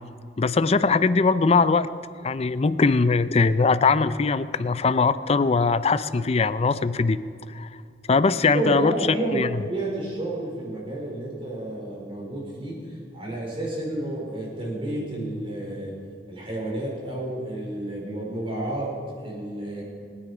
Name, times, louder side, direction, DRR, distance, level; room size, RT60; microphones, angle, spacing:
voice 1, 0.4-1.9 2.2-7.2 7.5-7.7 8.1-9.0 9.3-9.5, left 4 dB, 35° left, 14 dB, 0.5 m, -21 dB
voice 2, 8.5-15.9 16.3-18.9 19.2-19.8, right 1 dB, 30° right, -3 dB, 4.8 m, -30 dB
25.5 x 9.8 x 5.0 m, 2.4 s
head